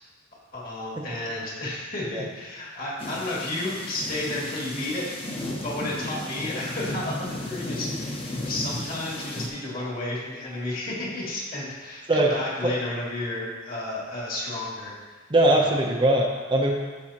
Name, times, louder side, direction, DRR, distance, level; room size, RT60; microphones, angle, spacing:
voice 1, 0.5-5.1 5.6-14.9 15.5-15.8, left 1 dB, 45° left, -5 dB, 2.3 m, -32 dB
sound 1, 3.0-9.5, left 1 dB, 30° left, 1.0 m, -34 dB
voice 2, 15.3-16.7, right 1 dB, 25° right, 0 dB, 0.6 m, -21 dB
13.5 x 5.4 x 2.9 m, 1.4 s
head